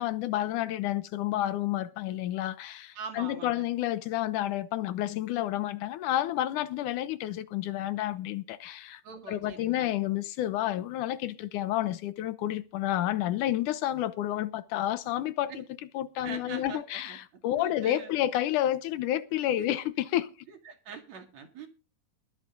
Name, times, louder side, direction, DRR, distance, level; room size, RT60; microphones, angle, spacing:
voice 1, 0.0-9.0 9.3-15.6 15.9-20.3, left 13 dB, 80° left, 2.4 m, -30 dB
voice 2, 2.9-3.7 9.0-9.9 15.5-15.6 16.2-17.2 17.5-18.1 20.5-21.7, right 6 dB, 60° right, 3.4 m, -43 dB
20.5 x 8.2 x 3.9 m
omnidirectional pair, 3.5 m